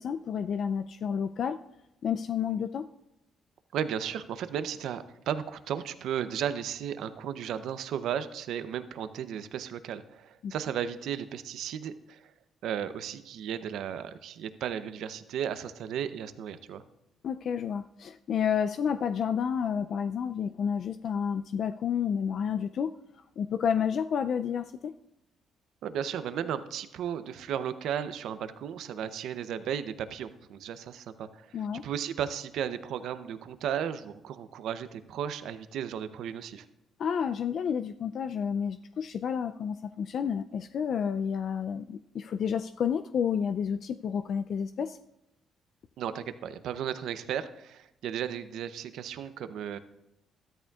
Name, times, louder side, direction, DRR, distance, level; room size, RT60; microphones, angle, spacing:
voice 1, 0.0-1.6 2.0-2.9 10.4-10.5 17.2-22.9 23.4-24.9 31.5-31.8 37.0-45.0, left 7 dB, 60° left, 9 dB, 0.3 m, -30 dB
voice 2, 3.7-12.2 12.6-16.8 25.8-36.7 46.0-49.8, right 9 dB, 80° right, 12 dB, 0.6 m, -35 dB
13.5 x 12.5 x 2.4 m, 0.87 s
cardioid pair, 90°, 0 cm